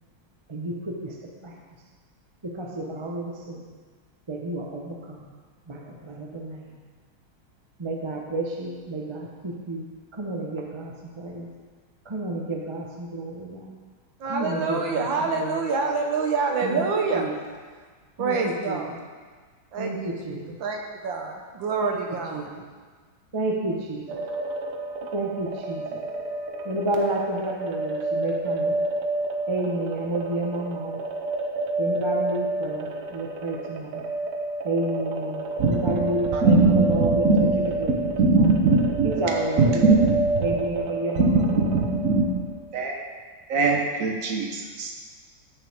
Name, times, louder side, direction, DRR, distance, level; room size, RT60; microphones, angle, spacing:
voice 1, 0.5-1.1 1.4-1.5 2.4-3.7 4.3-5.3 5.7-6.8 7.8-11.5 12.0-13.8 14.2-15.6 16.6-16.8 17.1-17.3 18.2-19.0 19.8-20.6 21.8-22.0 22.3-22.6 23.3-24.2 25.1-26.0 26.6-28.8 29.5-31.0 31.8-34.1 34.6-37.3 37.5-38.5 39.0-39.9 40.4-41.5, right 2 dB, 25° right, -1 dB, 0.7 m, -31 dB
voice 2, 14.2-17.3 18.2-18.9 19.7-22.5, right 4 dB, 70° right, 2 dB, 1.6 m, -27 dB
sound 1, 24.1-42.5, right 2 dB, 90° right, 1.8 m, -30 dB
voice 3, 36.3-37.1 38.2-39.1 40.0-40.1 41.3-41.4 41.7-42.2 42.7-43.0 43.5-44.9, right 3 dB, 50° right, 2 dB, 1.3 m, -21 dB
14.0 x 6.5 x 3.6 m, 1.5 s
omnidirectional pair, 2.3 m